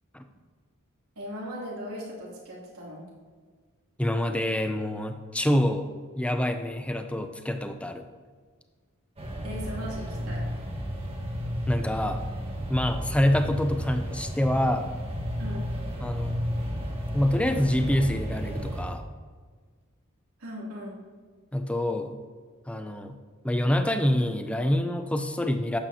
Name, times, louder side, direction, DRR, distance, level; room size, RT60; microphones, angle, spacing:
voice 1, 1.2-3.0 9.4-10.4 15.4-15.7 20.4-21.0, equal, 90° right, -5 dB, 2.8 m, -38 dB
voice 2, 4.0-5.9 6.2-8.0 11.7-12.2 12.7-14.9 16.0-16.4 17.1-19.0 21.5-22.2 22.7-23.2 23.4-25.8, left 1 dB, 5° left, 7 dB, 0.5 m, -26 dB
sound 1, 9.2-18.8, equal, 25° right, 1.4 m, -32 dB
12.0 x 8.6 x 2.8 m, 1.5 s
head